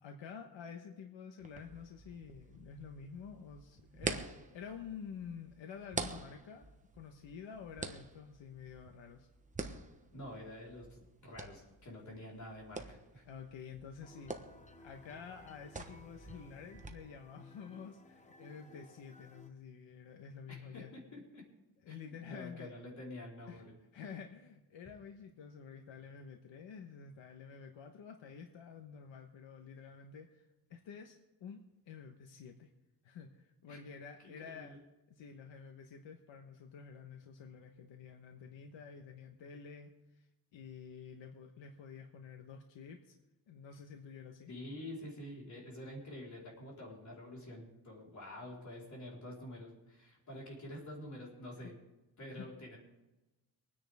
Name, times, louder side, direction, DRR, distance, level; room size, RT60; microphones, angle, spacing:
voice 1, 0.0-6.7 6.9-9.3 13.2-14.4 14.8-20.9 21.8-22.7 23.5-23.6 23.9-32.7 33.0-34.8 35.1-43.1 43.5-44.5 51.6-51.7 52.3-52.5, left 6 dB, 90° left, 4 dB, 1.3 m, -50 dB
sound 1, 1.4-16.9, right 3 dB, 15° right, 1.1 m, -47 dB
voice 2, 10.1-13.3 20.5-21.4 21.9-23.7 33.7-33.8 34.2-34.8 44.5-51.7 52.2-52.8, left 1 dB, 40° left, -3 dB, 4.4 m, -48 dB
sound 2, 14.0-19.5, left 2 dB, 15° left, 0.9 m, -59 dB
25.0 x 10.0 x 3.6 m, 1.0 s
wide cardioid pair, 155°, 44 cm